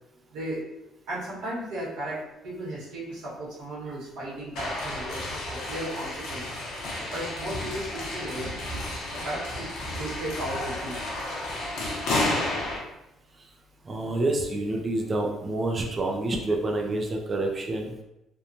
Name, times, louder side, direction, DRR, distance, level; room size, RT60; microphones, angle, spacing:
voice 1, 0.3-0.7 1.1-6.6 7.1-8.5 9.1-9.7 10.0-11.0, right 1 dB, 75° right, -7 dB, 1.1 m, -35 dB
sound 1, 4.6-12.8, left 1 dB, 70° left, 0.8 m, -32 dB
voice 2, 13.8-18.0, right 2 dB, 20° right, 1 dB, 0.3 m, -28 dB
2.9 x 2.2 x 2.5 m, 0.89 s
cardioid pair, 175°, 0 cm